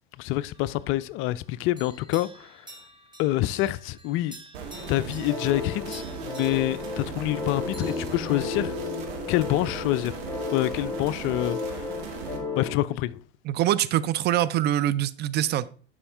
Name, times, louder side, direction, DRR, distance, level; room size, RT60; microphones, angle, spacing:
voice 1, 0.2-2.7 3.2-4.4 4.9-8.7 9.3-10.2 10.5-11.9 12.6-13.2, left 16 dB, 40° left, 0.4 m, -27 dB
sound 1, 0.5-1.4 1.8-7.5 7.7-9.2, right 1 dB, 15° right, 2.0 m, -50 dB
sound 2, 4.5-12.4, right 5 dB, 65° right, 1.9 m, -38 dB
sound 3, 5.3-12.7, left 4 dB, 10° left, 2.7 m, -34 dB
voice 2, 13.4-15.7, right 12 dB, 35° right, 0.4 m, -24 dB
11.0 x 4.9 x 3.4 m
figure-of-eight pair, 75°, 32 cm